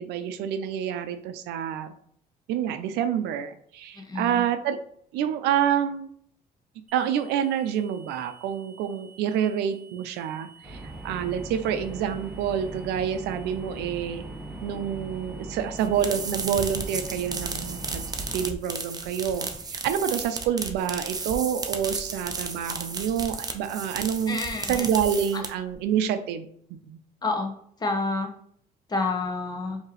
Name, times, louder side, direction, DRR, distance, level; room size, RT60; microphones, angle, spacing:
voice 1, 0.0-1.9 2.5-4.8 5.1-6.1 6.9-14.3 14.6-18.0 18.3-24.4 24.7-27.0, right 9 dB, 90° right, 10 dB, 0.5 m, -28 dB
voice 2, 3.9-4.4 24.3-24.9 27.2-27.5 27.8-28.3 28.9-29.8, left 3 dB, 25° left, 3 dB, 0.9 m, -29 dB
sound 1, 6.9-18.3, right 6 dB, 50° right, 0.9 m, -53 dB
sound 2, 10.6-18.5, right 2 dB, 5° right, 1.0 m, -40 dB
sound 3, 15.8-25.7, right 4 dB, 25° right, 0.6 m, -34 dB
4.6 x 2.8 x 3.1 m, 0.65 s
cardioid pair, 110°, 17 cm